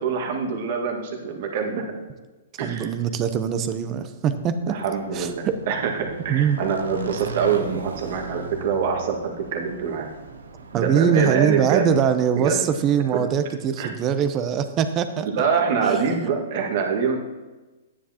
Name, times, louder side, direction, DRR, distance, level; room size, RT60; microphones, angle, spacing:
voice 1, 0.0-1.8 2.6-2.9 4.7-10.1 10.7-11.9 12.4-12.6 13.8-13.9 15.3-17.2, right 6 dB, 55° right, 1 dB, 1.7 m, -25 dB
voice 2, 2.6-4.8 5.1-5.6 6.3-6.6 10.7-15.5 15.8-16.1, right 8 dB, 30° right, 10 dB, 0.7 m, -22 dB
Motorcycle / Engine, 4.6-11.9, right 3 dB, 80° right, 0.8 m, -38 dB
10.5 x 9.7 x 2.9 m, 1.2 s
hypercardioid pair, 120°, 0 cm